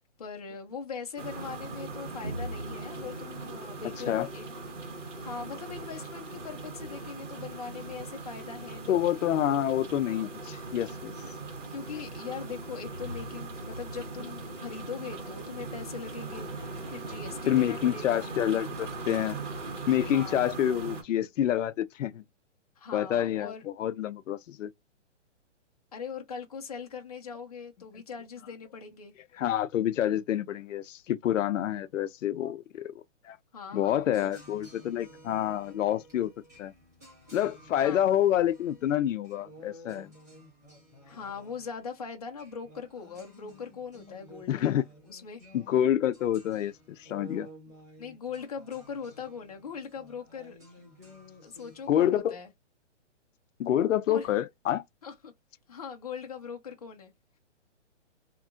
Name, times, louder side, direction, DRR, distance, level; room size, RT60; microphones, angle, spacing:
voice 1, 0.0-4.5 5.2-9.0 11.7-16.5 16.9-18.3 20.1-20.4 22.8-23.6 25.9-29.1 33.5-34.0 37.8-38.0 41.1-44.7 45.1-45.4 48.0-50.6 51.4-52.5 54.1-54.3 55.0-55.3 55.7-57.1, left 6 dB, 30° left, 0.6 m, -41 dB
sound 1, 1.2-21.0, right 3 dB, 80° right, 1.5 m, -39 dB
voice 2, 8.9-11.1 17.5-19.4 19.9-22.2 22.9-24.7 29.4-32.9 33.2-33.4 33.7-36.3 36.6-36.7 37.3-40.1 44.5-44.8 45.5-47.5 51.9-52.4 53.6-54.8, left 11 dB, 90° left, 0.5 m, -27 dB
sound 2, 33.9-52.2, equal, 15° right, 0.6 m, -53 dB
2.9 x 2.4 x 2.4 m
hypercardioid pair, 175°, 37 cm